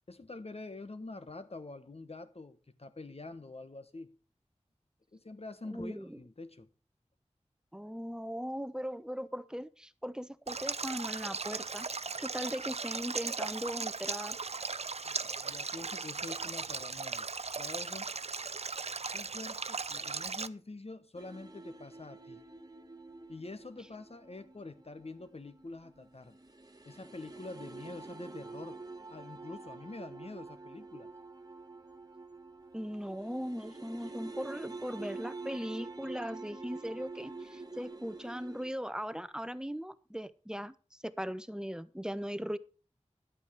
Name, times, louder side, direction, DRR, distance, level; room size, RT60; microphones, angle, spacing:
voice 1, 0.1-4.2 5.1-6.7 15.0-17.3 17.6-18.1 19.1-22.4 23.3-26.4 26.8-28.8 29.1-31.1, left 2 dB, 55° left, 1.3 m, -46 dB
voice 2, 5.7-6.2 7.7-11.9 12.2-14.4 32.7-40.7 41.0-42.6, equal, 5° right, 0.8 m, -39 dB
Stream, 10.5-20.5, right 4 dB, 60° right, 0.5 m, -37 dB
sound 1, 21.2-38.7, right 3 dB, 30° right, 1.4 m, -47 dB
11.0 x 8.3 x 4.8 m
wide cardioid pair, 60°, 12 cm